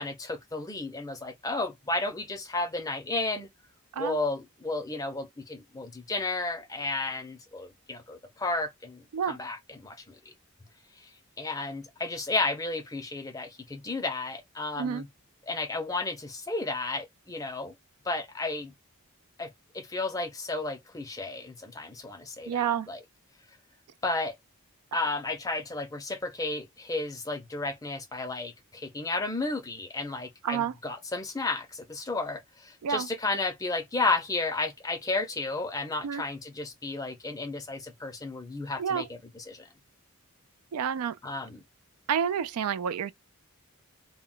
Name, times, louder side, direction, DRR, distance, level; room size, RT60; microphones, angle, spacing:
voice 1, 0.0-3.5 4.0-10.3 11.0-11.1 11.4-15.1 15.5-17.7 18.1-18.7 19.4-23.0 24.0-24.3 24.9-39.7 41.2-41.6, left 3 dB, 15° left, 0.5 m, -33 dB
voice 2, 22.5-22.9 24.9-25.1 30.4-30.7 32.8-33.1 36.0-36.2 38.8-39.1 40.7-41.2 42.1-43.1, right 7 dB, 85° right, 0.4 m, -29 dB
2.1 x 2.1 x 3.7 m
head